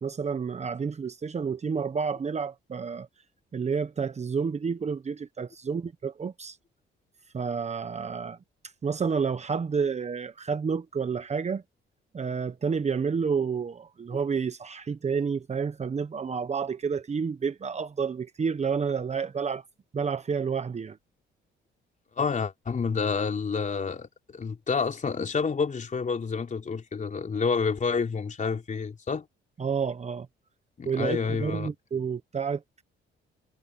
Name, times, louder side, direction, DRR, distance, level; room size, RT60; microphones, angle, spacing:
voice 1, 0.0-3.1 3.5-6.6 7.3-8.4 8.8-11.6 12.1-19.6 19.9-21.0 29.6-30.3 30.8-32.8, right 6 dB, 35° right, 1.1 m, -30 dB
voice 2, 22.2-29.3 30.8-31.7, left 5 dB, 40° left, 3.8 m, -29 dB
cardioid pair, 90°, 20 cm